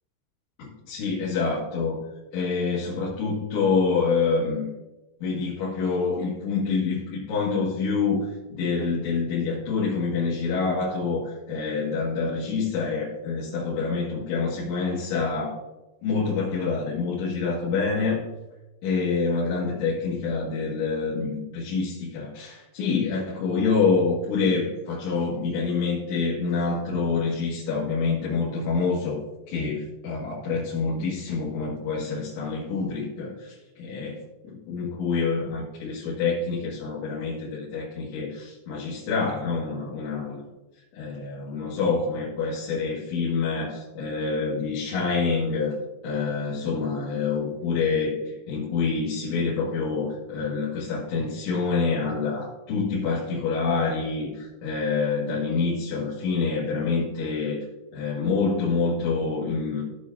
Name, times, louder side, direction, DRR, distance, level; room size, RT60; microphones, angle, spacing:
voice 1, 0.6-2.0 2.3-4.7 5.2-15.6 16.0-18.3 18.8-29.2 29.5-34.2 34.5-40.4 40.9-45.8 46.0-57.6 57.9-59.8, left 4 dB, 85° left, -7 dB, 4.5 m, -27 dB
16.5 x 7.0 x 2.8 m, 1.0 s
omnidirectional pair, 5.3 m